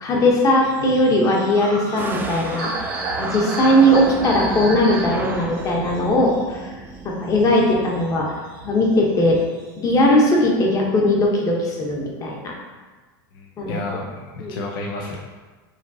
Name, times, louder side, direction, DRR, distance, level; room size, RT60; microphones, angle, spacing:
voice 1, 0.0-6.6 7.0-8.3 8.6-9.4 9.8-12.5 13.6-13.8 14.4-14.6, left 1 dB, 30° left, -1 dB, 0.9 m, -19 dB
sound 1, 0.6-7.1 7.5-8.9 9.2-9.8, right 2 dB, 80° right, 1.5 m, -33 dB
sound 2, 2.0-7.6, right 3 dB, 15° right, 0.3 m, -32 dB
voice 2, 13.3-15.2, left 2 dB, 75° left, -1 dB, 0.6 m, -31 dB
5.0 x 2.9 x 2.7 m, 1.3 s
supercardioid pair, 125°, 12 cm